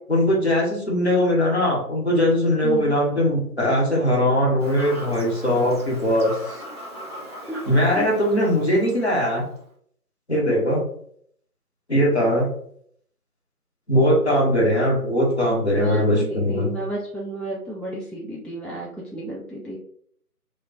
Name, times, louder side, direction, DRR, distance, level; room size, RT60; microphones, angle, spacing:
voice 1, 0.1-6.6 7.7-9.4 10.3-10.8 11.9-12.5 13.9-16.7, equal, 45° left, -3 dB, 1.0 m, -20 dB
voice 2, 2.6-3.0 6.6-6.7 7.5-8.1 10.4-10.5 15.7-19.8, equal, 5° left, -5 dB, 0.4 m, -32 dB
Fowl / Bird vocalization bird call bird song, 4.6-9.6, equal, 40° right, 0.9 m, -39 dB
4.3 x 2.2 x 2.5 m, 0.64 s
figure-of-eight pair, 170°, 46 cm